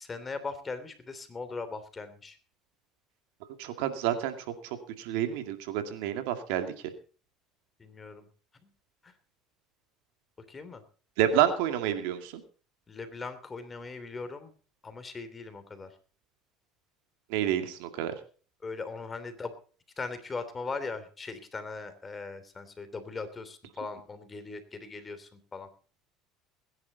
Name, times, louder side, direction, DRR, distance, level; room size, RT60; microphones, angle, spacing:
voice 1, 0.0-2.4 7.8-8.3 9.0-9.1 10.5-10.8 12.9-14.5 14.8-15.9 18.6-19.5 20.0-25.7, left 4 dB, 25° left, 10 dB, 3.1 m, -39 dB
voice 2, 3.6-6.7 11.2-12.4 17.3-18.1, right 10 dB, 80° right, 7 dB, 2.2 m, -29 dB
21.0 x 10.5 x 4.0 m, 0.39 s
supercardioid pair, 95°, 0 cm